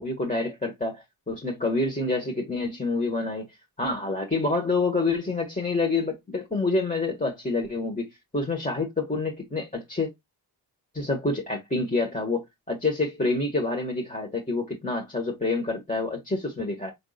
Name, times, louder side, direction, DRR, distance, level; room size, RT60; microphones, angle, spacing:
voice 1, 0.0-3.5 3.8-8.1 8.3-10.1 10.9-16.9, left 3 dB, 15° left, 1.6 m, -27 dB
5.3 x 3.5 x 2.4 m
supercardioid pair, 45°, 48 cm